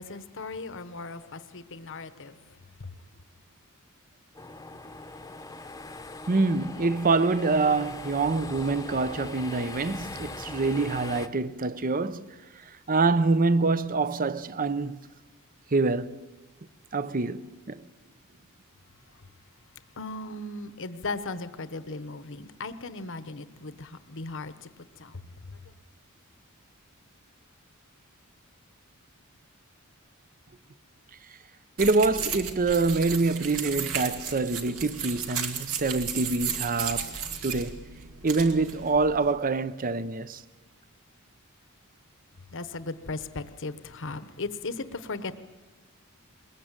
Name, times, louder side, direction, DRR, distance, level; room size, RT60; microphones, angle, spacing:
voice 1, 0.0-2.4 2.8-2.9 20.0-25.6 42.5-45.4, left 3 dB, 60° left, 1.1 m, -37 dB
sound 1, 4.3-11.3, left 2 dB, 15° left, 0.9 m, -41 dB
voice 2, 6.3-12.3 12.9-15.0 15.7-16.2 16.9-17.8 31.8-37.2 37.4-37.9 38.2-40.4, right 3 dB, 40° right, 0.7 m, -25 dB
sound 2, 31.8-39.3, right 7 dB, 75° right, 2.1 m, -34 dB
21.5 x 20.5 x 9.0 m
head